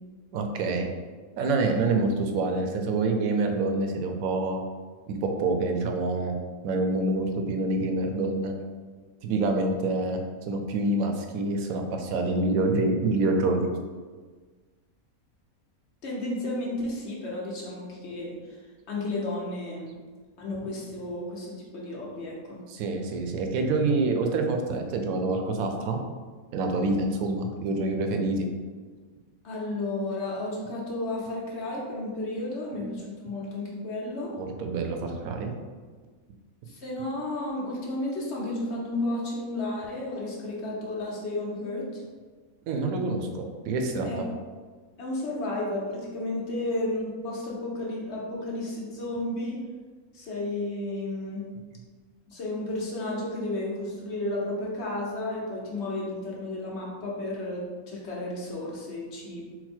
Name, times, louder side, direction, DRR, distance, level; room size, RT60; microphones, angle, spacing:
voice 1, 0.3-0.9 1.4-4.6 5.1-6.4 6.6-8.5 9.2-13.7 22.7-26.0 26.5-28.5 34.4-35.5 42.6-44.2, right 2 dB, 80° right, 4 dB, 1.0 m, -27 dB
voice 2, 16.0-18.6 18.9-19.9 20.4-22.6 29.4-34.3 36.7-42.0 44.0-44.2 45.0-49.6 50.1-51.4 52.3-59.4, left 2 dB, 55° left, -3 dB, 1.1 m, -32 dB
4.0 x 2.1 x 4.3 m, 1.4 s
omnidirectional pair, 1.5 m